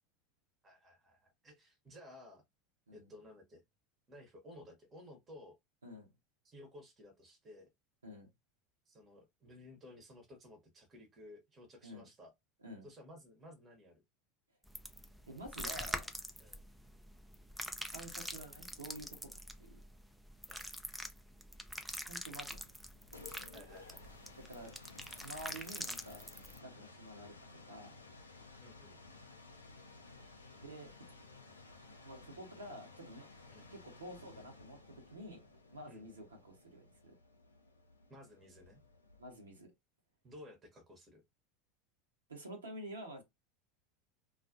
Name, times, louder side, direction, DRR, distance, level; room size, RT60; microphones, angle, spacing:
voice 1, 0.6-2.4 2.9-3.6 4.1-5.6 6.4-7.7 8.9-12.3 12.8-14.0 16.4-16.6 20.5-20.7 23.5-24.0 26.7-26.9 28.6-29.0 33.5-33.7 35.9-36.1 38.1-38.8 40.2-41.2, left 1 dB, 25° right, 0.9 m, -56 dB
sound 1, 14.7-26.6, equal, ahead, 0.4 m, -45 dB
voice 2, 15.3-16.1 17.8-19.8 22.1-22.6 24.4-24.7 25.2-26.3 26.6-27.9 30.6-31.0 32.0-33.3 33.7-37.1 39.2-39.7 42.3-43.2, right 1 dB, 80° right, 0.8 m, -49 dB
sound 2, 22.8-39.5, left 3 dB, 85° left, 0.5 m, -56 dB
2.4 x 2.2 x 2.5 m
figure-of-eight pair, 80°, 0 cm